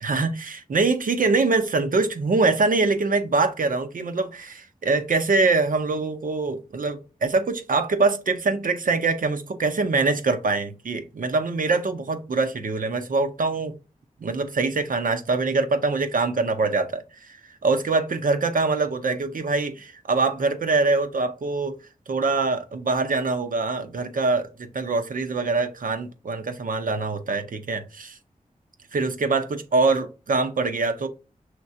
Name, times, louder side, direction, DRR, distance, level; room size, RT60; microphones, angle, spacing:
voice 1, 0.0-13.7 14.2-21.8 22.1-28.2 28.9-31.1, right 3 dB, 70° right, 0.7 m, -24 dB
6.0 x 3.2 x 2.7 m
cardioid pair, 50°, 14 cm